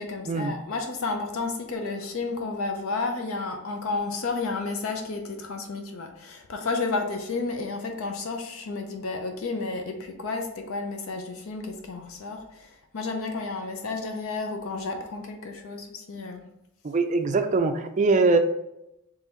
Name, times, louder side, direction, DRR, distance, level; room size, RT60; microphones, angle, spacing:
voice 1, 0.0-16.4, left 3 dB, 60° left, 4 dB, 0.6 m, -32 dB
voice 2, 16.8-18.4, right 3 dB, 35° right, 7 dB, 0.4 m, -22 dB
3.8 x 3.3 x 4.0 m, 0.86 s
head